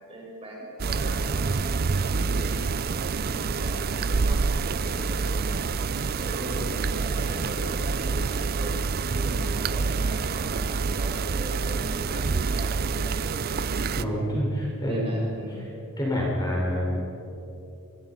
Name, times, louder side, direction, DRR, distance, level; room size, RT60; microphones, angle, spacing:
voice 1, 0.1-2.6 3.2-5.7 6.1-8.8 9.1-13.3 14.3-14.4 14.9-15.6, equal, 25° right, -3 dB, 6.7 m, -39 dB
sound 1, 0.8-14.0, right 4 dB, 45° right, 0.5 m, -27 dB
voice 2, 13.9-15.2 16.0-17.0, equal, 20° left, -4 dB, 5.1 m, -27 dB
25.0 x 24.5 x 5.7 m, 2.7 s
head